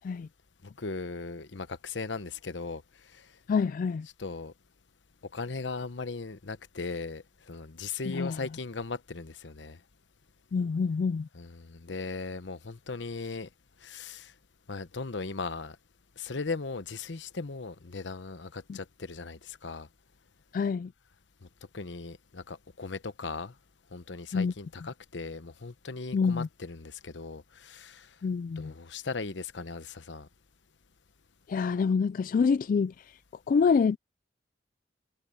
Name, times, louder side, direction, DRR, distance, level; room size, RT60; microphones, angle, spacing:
voice 1, 0.6-3.3 4.2-4.5 5.3-9.8 11.3-13.5 13.8-14.3 14.7-15.8 16.2-19.9 21.7-23.5 23.9-28.1 28.6-30.3, left 4 dB, 70° left, 1.0 m, -38 dB
voice 2, 3.5-4.1 8.1-8.4 10.5-11.3 18.7-18.8 20.5-20.9 24.3-24.5 26.1-26.5 28.2-28.7 31.5-33.2 33.5-34.0, left 5 dB, 50° left, 0.3 m, -27 dB
head